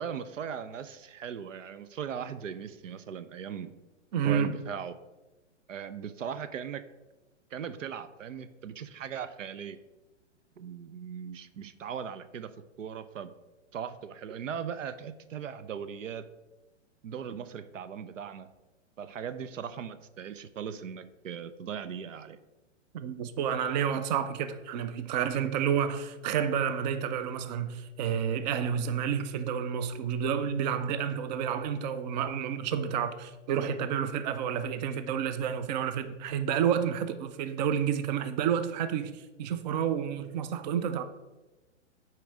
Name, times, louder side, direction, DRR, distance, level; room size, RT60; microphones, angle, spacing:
voice 1, 0.0-3.7 4.2-5.0 5.7-6.8 7.5-9.8 10.6-13.3 13.7-16.3 17.0-18.5 19.0-22.4, right 7 dB, 90° right, 0.6 m, -39 dB
voice 2, 4.1-4.5 22.9-41.0, right 8 dB, 35° right, 0.4 m, -30 dB
5.9 x 4.5 x 4.8 m
hypercardioid pair, 130°, 37 cm